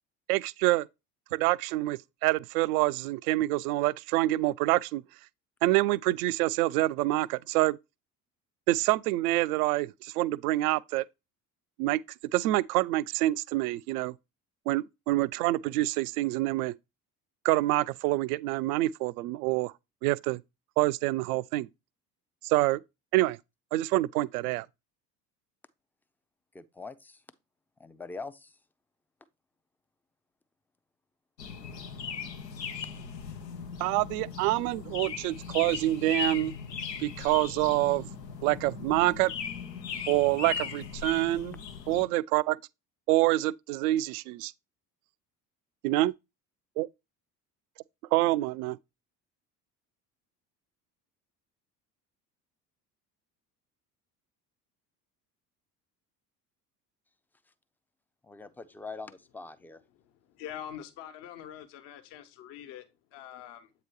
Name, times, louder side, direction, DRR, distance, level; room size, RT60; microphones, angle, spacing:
voice 1, 0.3-0.9 1.3-5.0 5.6-7.8 8.7-11.0 11.8-12.0 12.3-14.1 14.7-16.7 17.4-19.7 20.0-20.4 20.8-21.7 22.4-22.8 23.1-23.4 23.7-24.7 33.8-36.5 37.0-38.1 38.4-39.3 40.1-41.5 41.9-42.6 43.1-44.5 45.8-46.1 46.8-46.9 48.1-48.8, right 18 dB, 65° right, 0.5 m, -26 dB
voice 2, 26.5-27.2 27.8-28.6 58.2-59.8, left 3 dB, 5° left, 0.4 m, -43 dB
sound 1, 31.4-42.0, left 6 dB, 85° left, 0.8 m, -38 dB
voice 3, 59.9-63.7, left 10 dB, 55° left, 1.2 m, -45 dB
8.0 x 2.9 x 4.6 m
figure-of-eight pair, 60°, 49 cm